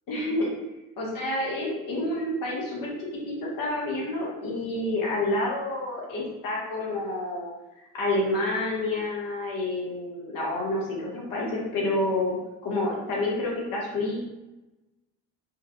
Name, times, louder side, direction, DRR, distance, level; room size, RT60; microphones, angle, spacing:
voice 1, 0.1-0.5 1.0-7.5 7.9-14.2, left 2 dB, 45° left, -4 dB, 0.9 m, -29 dB
3.2 x 2.2 x 2.2 m, 1.0 s
figure-of-eight pair, 45°, 46 cm